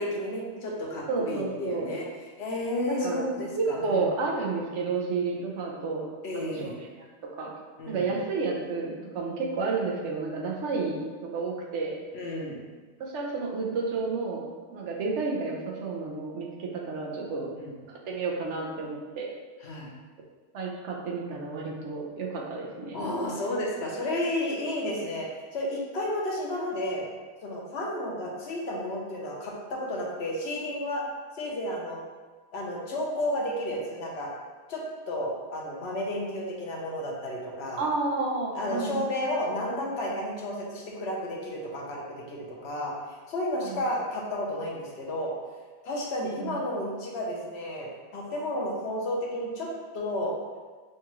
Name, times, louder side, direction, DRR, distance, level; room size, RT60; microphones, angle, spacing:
voice 1, 0.0-2.1 2.4-4.1 6.2-6.8 7.8-8.1 12.1-12.6 17.5-17.7 19.6-19.9 22.9-27.0 27.4-31.0 31.3-32.0 32.5-34.3 34.7-37.8 38.5-42.9 43.3-45.3 45.8-50.3, left 1 dB, 65° left, -2 dB, 1.0 m, -32 dB
voice 2, 1.1-1.9 2.9-3.3 3.6-6.0 6.3-7.1 7.4-7.5 7.9-12.0 13.0-14.4 14.7-17.5 18.1-19.3 20.5-23.0 37.8-39.0 43.6-43.8 46.3-46.5, right 4 dB, 80° right, -2 dB, 1.0 m, -31 dB
5.4 x 2.4 x 3.0 m, 1.4 s
omnidirectional pair, 1.2 m